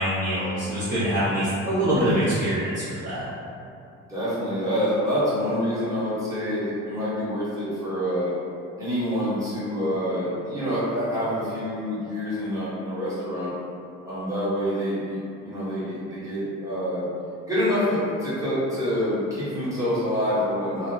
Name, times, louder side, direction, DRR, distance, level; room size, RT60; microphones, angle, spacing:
voice 1, 0.0-3.3, equal, 30° right, -12 dB, 0.7 m, -24 dB
voice 2, 1.8-2.3 4.1-8.3 8.8-13.5 14.0-17.1 17.5-20.9, equal, 10° right, -11 dB, 1.2 m, -27 dB
2.4 x 2.2 x 3.8 m, 2.6 s
cardioid pair, 130°, 30 cm